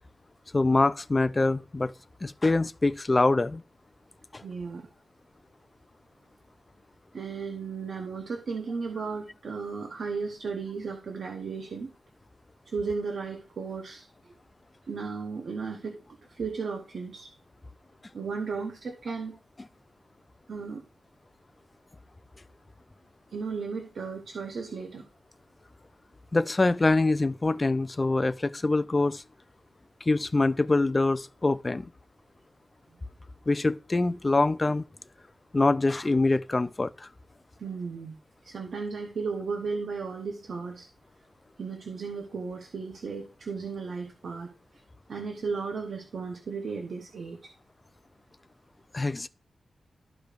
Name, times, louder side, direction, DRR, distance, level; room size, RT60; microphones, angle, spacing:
voice 1, 0.5-1.9 2.2-3.6 4.3-4.4 26.3-29.2 30.1-31.9 33.5-34.8 35.5-37.1 48.9-49.3, left 2 dB, 25° left, 0.4 m, -24 dB
voice 2, 4.4-4.9 7.1-11.9 12.7-14.3 14.9-17.3 18.1-19.4 20.5-20.8 23.3-25.0 37.6-38.1 38.4-40.9 41.6-44.5 45.1-47.4, right 5 dB, 65° right, 1.0 m, -35 dB
13.0 x 5.0 x 2.5 m
wide cardioid pair, 130°, 0 cm